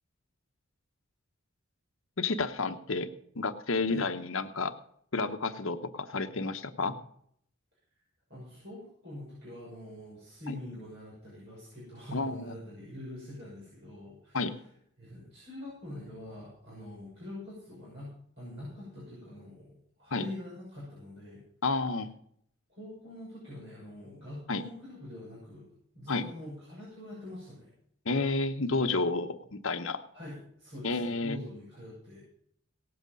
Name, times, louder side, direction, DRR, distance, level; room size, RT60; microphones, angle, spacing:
voice 1, 2.2-3.1 3.4-4.7 5.1-6.9 10.5-10.6 12.1-12.5 14.3-14.5 20.1-20.2 21.6-22.1 24.5-24.6 26.1-26.2 28.1-30.0 30.8-31.4, left 3 dB, 70° left, 9 dB, 0.9 m, -30 dB
voice 2, 8.3-14.5 15.0-21.4 22.7-25.7 25.9-27.7 30.1-32.2, left 1 dB, 55° right, -7 dB, 6.1 m, -44 dB
18.0 x 8.0 x 5.3 m, 0.68 s
head